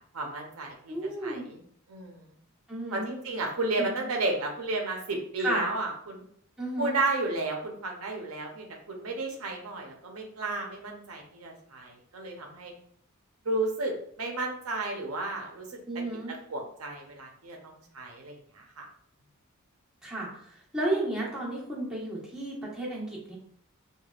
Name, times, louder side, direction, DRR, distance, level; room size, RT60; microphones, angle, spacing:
voice 1, 0.1-0.9 1.2-1.6 1.9-2.4 2.9-6.3 6.8-12.7 13.4-15.8 16.3-18.9, right 2 dB, 70° right, 2 dB, 0.7 m, -33 dB
voice 2, 0.9-1.4 2.7-3.1 3.8-4.0 5.4-5.6 6.6-7.0 15.8-16.4 20.0-23.4, right 1 dB, 5° right, -6 dB, 1.1 m, -33 dB
4.9 x 2.3 x 2.4 m, 0.63 s
head